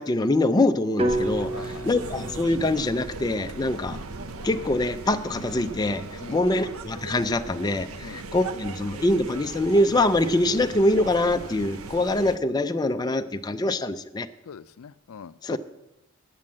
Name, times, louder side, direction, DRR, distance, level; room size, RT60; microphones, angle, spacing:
voice 1, 0.0-4.0 4.4-14.3 15.4-15.6, left 2 dB, 20° left, 8 dB, 0.4 m, -24 dB
sound 1, 1.0-5.0, right 1 dB, 25° right, 0.8 m, -32 dB
sound 2, 1.1-12.4, right 3 dB, 85° right, 0.7 m, -38 dB
voice 2, 1.5-1.9 6.2-6.4 8.0-8.2 14.5-15.6, left 7 dB, 85° left, 15 dB, 0.4 m, -41 dB
9.0 x 8.5 x 7.3 m, 0.94 s
head